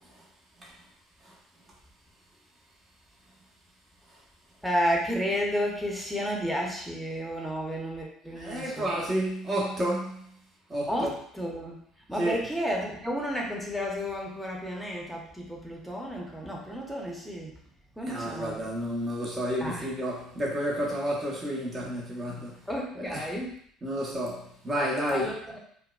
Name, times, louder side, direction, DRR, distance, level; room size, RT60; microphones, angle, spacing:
voice 1, 4.6-8.9 10.9-11.7 12.1-17.6 18.0-18.6 19.6-19.9 22.7-23.5 25.1-25.6, equal, ahead, -1 dB, 0.9 m, -32 dB
voice 2, 8.3-10.3 10.7-11.1 12.2-12.4 18.1-22.7 22.9-23.4 23.8-25.3, equal, 30° right, -4 dB, 1.1 m, -31 dB
4.5 x 2.2 x 2.3 m, 0.65 s
hypercardioid pair, 65°, 0 cm